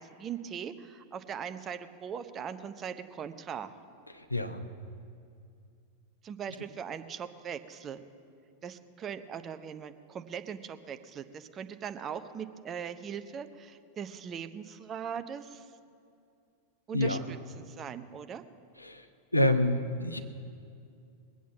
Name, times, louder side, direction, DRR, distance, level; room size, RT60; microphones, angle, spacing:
voice 1, 0.0-3.7 6.2-8.0 8.6-15.7 16.9-18.4, right 7 dB, 25° right, 9 dB, 0.8 m, -40 dB
voice 2, 4.1-4.6 16.9-17.2 18.8-19.0 19.3-20.2, left 1 dB, 85° left, 8 dB, 0.8 m, -27 dB
21.0 x 8.4 x 7.2 m, 2.4 s
figure-of-eight pair, 90°, 0 cm